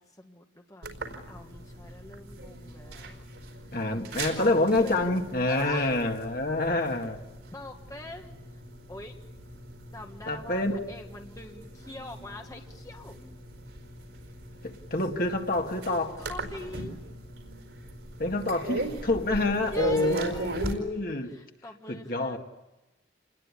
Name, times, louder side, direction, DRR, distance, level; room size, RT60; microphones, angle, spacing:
voice 1, 0.0-3.2 4.4-6.0 7.5-8.4 8.9-9.2 9.9-13.2 16.2-17.0 19.7-20.9 21.2-22.4, left 2 dB, 20° left, 1.6 m, -44 dB
sound 1, 0.8-20.7, right 2 dB, 85° right, 4.7 m, -39 dB
voice 2, 3.7-7.2 10.3-10.8 14.6-16.2 18.2-21.4 21.9-22.4, left 2 dB, 50° left, 2.1 m, -27 dB
28.5 x 21.0 x 9.9 m
head